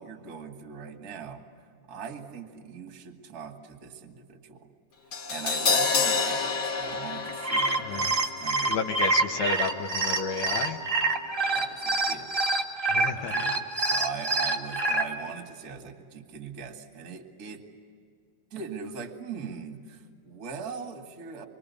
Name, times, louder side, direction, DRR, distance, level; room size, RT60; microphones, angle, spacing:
voice 1, 0.0-1.5 1.9-4.7 5.3-9.0 11.5-12.3 13.1-17.6 18.5-21.4, right 6 dB, 35° right, 4 dB, 1.5 m, -41 dB
Crash cymbal, 5.1-11.3 11.5-11.7, left 4 dB, 35° left, 2.7 m, -30 dB
sound 1, 7.3-15.0, right 3 dB, 70° right, 0.5 m, -26 dB
voice 2, 8.7-10.8 12.9-13.4, left 5 dB, 75° left, 5 dB, 3.2 m, -31 dB
26.0 x 24.0 x 8.4 m, 2.2 s
omnidirectional pair, 4.8 m